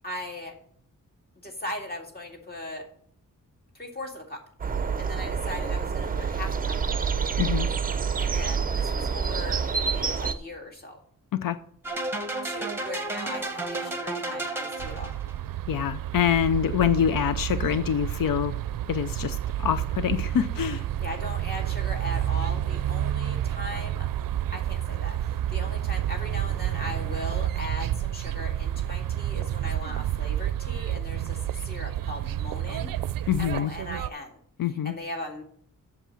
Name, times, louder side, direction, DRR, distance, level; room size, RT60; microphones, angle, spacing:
voice 1, 0.0-0.5 1.4-2.9 3.7-4.4 5.0-6.8 8.2-9.7 9.9-11.0 12.4-15.1 21.0-24.1 24.5-32.9 33.4-34.4 34.8-35.4, left 1 dB, 30° left, 2 dB, 2.1 m, -38 dB
sound 1, 4.6-10.3, right 6 dB, 25° right, 0.5 m, -27 dB
sound 2, 11.8-15.3, right 2 dB, 5° right, 1.1 m, -32 dB
sound 3, 14.8-34.1, right 11 dB, 80° right, 0.5 m, -30 dB
voice 2, 15.7-18.5 18.9-20.8 33.3-33.7 34.6-34.9, left 9 dB, 80° left, 12 dB, 0.6 m, -25 dB
8.2 x 7.3 x 7.5 m, 0.62 s
wide cardioid pair, 180°, 33 cm